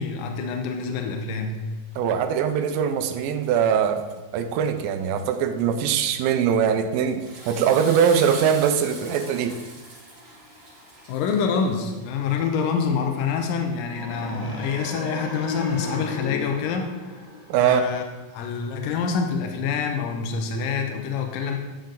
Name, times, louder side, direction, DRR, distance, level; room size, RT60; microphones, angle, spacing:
voice 1, 0.0-1.6 11.1-16.9 17.6-18.1 18.3-21.6, left 5 dB, 75° left, 4 dB, 2.3 m, -26 dB
voice 2, 2.0-4.0 4.3-9.6 17.5-17.8, right 8 dB, 80° right, 8 dB, 2.3 m, -22 dB
Water / Toilet flush, 7.1-12.3, right 1 dB, 40° right, 3.6 m, -42 dB
sound 1, 13.8-18.0, left 4 dB, 40° left, 1.3 m, -35 dB
11.0 x 5.2 x 3.8 m, 1.2 s
omnidirectional pair, 4.3 m